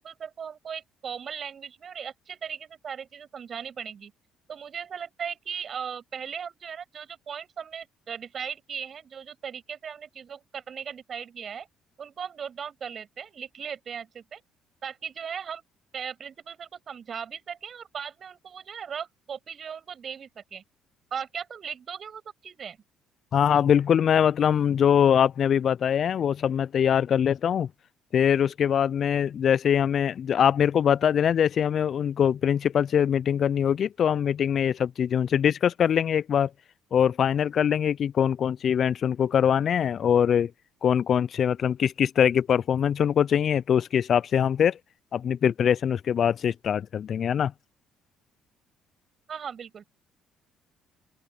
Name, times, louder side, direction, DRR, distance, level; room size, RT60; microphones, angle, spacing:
voice 1, 0.0-4.1 4.5-11.7 12.0-14.4 14.8-15.6 15.9-20.6 21.1-22.8 49.3-49.8, right 7 dB, 45° right, 7.9 m, -38 dB
voice 2, 23.3-27.7 28.1-36.5 36.9-40.5 40.8-44.8 45.1-47.5, left 8 dB, 50° left, 0.6 m, -23 dB
open air
hypercardioid pair, 50°, 0 cm